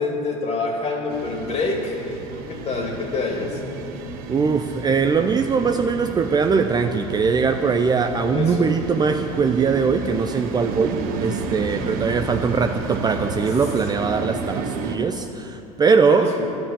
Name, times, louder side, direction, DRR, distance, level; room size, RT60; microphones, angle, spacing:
voice 1, 0.0-3.6 8.3-8.8 16.1-16.6, left 3 dB, 35° left, 1 dB, 2.6 m, -26 dB
sound 1, 1.1-15.0, right 4 dB, 50° right, 1.3 m, -31 dB
voice 2, 4.3-16.3, right 5 dB, 20° right, 6 dB, 0.6 m, -21 dB
11.0 x 7.6 x 8.8 m, 2.9 s
hypercardioid pair, 80°, 19 cm